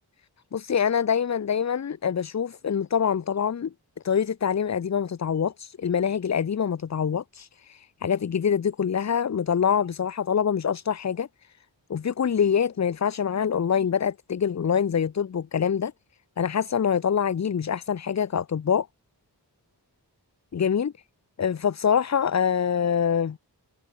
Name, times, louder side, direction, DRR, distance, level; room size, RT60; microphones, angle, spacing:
voice 1, 0.5-3.7 4.0-11.3 11.9-15.9 16.4-18.9 20.5-20.9 21.4-23.4, left 7 dB, 40° left, 0.5 m, -25 dB
wide cardioid pair, 45°, 42 cm